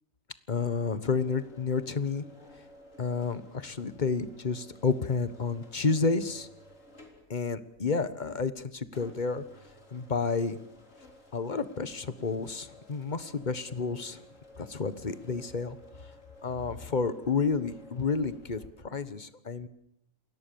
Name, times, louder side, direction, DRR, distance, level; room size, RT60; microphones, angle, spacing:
voice 1, 0.5-2.2 3.0-6.5 7.3-9.4 9.9-10.6 11.3-14.2 14.6-15.8 16.4-19.7, left 4 dB, 35° left, 13 dB, 1.4 m, -30 dB
sound 1, 0.6-18.7, left 1 dB, 70° left, 4.1 m, -55 dB
29.0 x 21.0 x 7.0 m, 0.77 s
omnidirectional pair, 1.4 m